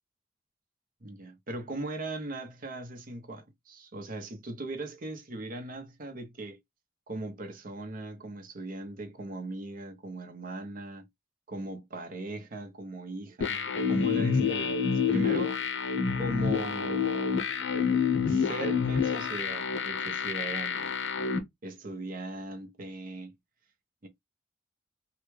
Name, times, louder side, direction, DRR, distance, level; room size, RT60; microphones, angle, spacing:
voice 1, 1.0-6.6 7.1-11.1 11.5-15.5 16.2-17.4 18.3-21.0 21.6-23.4 24.0-24.1, right 2 dB, 45° right, 0.8 m, -39 dB
sound 1, 13.4-21.4, left 6 dB, 70° left, 0.8 m, -28 dB
3.2 x 2.3 x 3.2 m
head